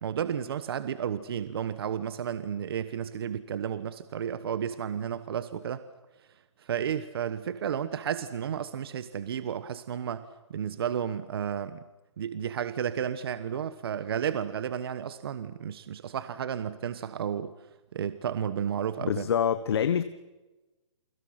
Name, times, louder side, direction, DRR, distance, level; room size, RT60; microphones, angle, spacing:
voice 1, 0.0-5.8 6.6-10.2 10.5-11.8 12.2-17.5 17.9-19.3, right 8 dB, 50° right, 1.2 m, -32 dB
voice 2, 19.0-20.0, left 8 dB, 55° left, 1.2 m, -26 dB
29.5 x 24.0 x 5.9 m
hypercardioid pair, 170°, 16 cm